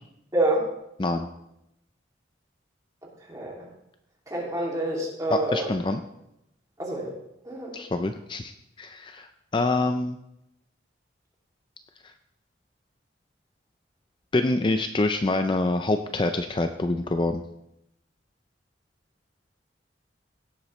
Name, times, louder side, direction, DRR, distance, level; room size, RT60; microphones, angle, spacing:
voice 1, 0.3-0.7 3.3-3.7 4.3-5.7 6.8-7.1 7.4-7.8, right 1 dB, 20° right, -3 dB, 2.5 m, -27 dB
voice 2, 5.3-6.0 7.7-8.5 8.8-10.2 14.3-17.4, left 2 dB, 25° left, 7 dB, 0.4 m, -26 dB
17.0 x 7.9 x 3.2 m, 0.84 s
head